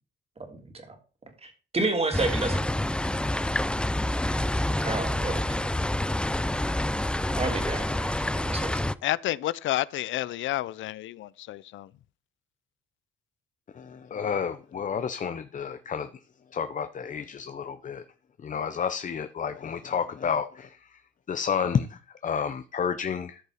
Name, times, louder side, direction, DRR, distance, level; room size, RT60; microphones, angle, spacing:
voice 1, 1.4-2.7 4.8-5.7 7.3-8.8, right 3 dB, 30° right, 2.9 m, -30 dB
sound 1, 2.1-8.9, left 1 dB, 5° left, 0.4 m, -27 dB
voice 2, 9.0-11.9, left 14 dB, 75° left, 0.5 m, -30 dB
voice 3, 13.8-16.1 16.5-18.0 18.4-20.8 21.3-23.4, left 7 dB, 40° left, 0.7 m, -30 dB
13.5 x 5.4 x 5.0 m
cardioid pair, 90°, 20 cm